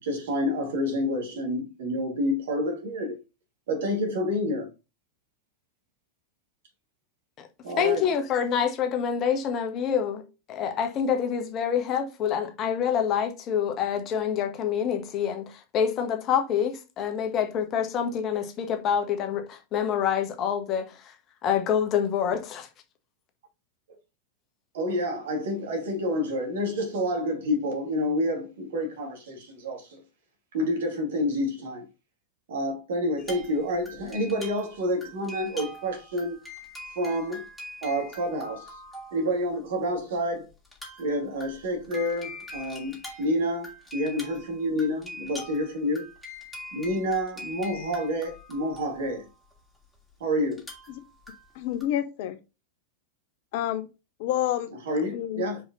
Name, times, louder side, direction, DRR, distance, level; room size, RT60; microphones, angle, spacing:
voice 1, 0.0-3.2 3.7-4.7 7.6-8.1 24.7-30.0 30.5-31.8 32.5-36.4 37.0-37.4 37.8-38.7 39.1-40.5 41.0-46.1 46.7-49.3 50.2-50.6 54.9-55.6, equal, 60° right, 2.4 m, -28 dB
voice 2, 7.8-10.2 10.5-20.9 21.4-22.7, left 8 dB, 35° left, 1.4 m, -26 dB
sound 1, 33.2-39.5 40.0-40.1 40.6-49.8 50.5-51.8, left 1 dB, 5° left, 2.5 m, -43 dB
voice 3, 51.5-52.4 53.5-53.9 54.2-54.7 55.1-55.4, left 12 dB, 50° left, 0.7 m, -28 dB
5.1 x 4.9 x 3.9 m
figure-of-eight pair, 90°, 0 cm